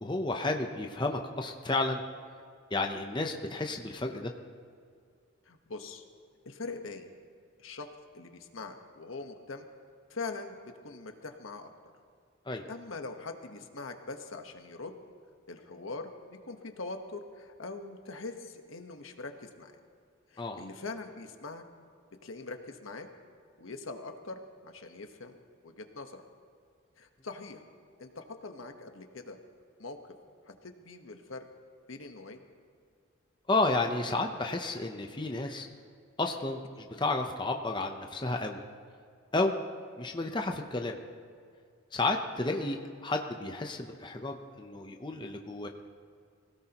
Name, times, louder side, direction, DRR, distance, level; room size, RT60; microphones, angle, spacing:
voice 1, 0.0-2.0 2.7-4.3 12.5-12.6 20.4-20.7 33.5-35.7 36.2-38.6 39.3-39.6 40.0-41.0 41.9-45.7, left 2 dB, 20° left, 3 dB, 0.7 m, -32 dB
voice 2, 5.5-6.0 6.4-7.1 7.6-7.9 8.1-9.7 10.1-11.7 12.7-14.9 15.5-19.8 20.3-21.6 22.2-23.1 23.6-25.4 25.6-26.2 27.0-27.6 28.0-29.4 29.8-30.0 30.5-31.4 31.9-32.4, left 3 dB, 75° left, 5 dB, 1.2 m, -42 dB
24.0 x 17.0 x 3.0 m, 2.2 s
head